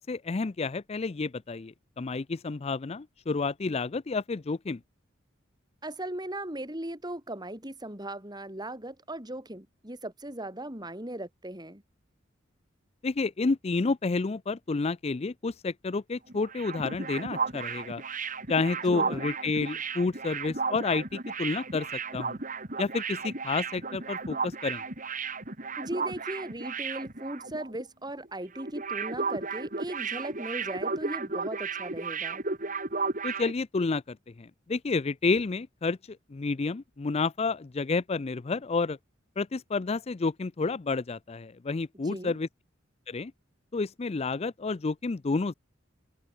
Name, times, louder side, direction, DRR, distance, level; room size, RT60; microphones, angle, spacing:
voice 1, 0.1-4.8 13.0-18.0 18.5-22.4 22.8-24.8 33.2-39.0 39.4-42.5 43.1-43.3 43.7-45.5, left 3 dB, 30° left, 0.5 m, -30 dB
voice 2, 5.8-11.8 18.9-19.4 25.8-32.4 42.0-42.4, right 1 dB, 20° right, 6.0 m, -38 dB
sound 1, 16.3-27.8 28.1-28.3 28.6-33.5, right 4 dB, 45° right, 4.1 m, -34 dB
head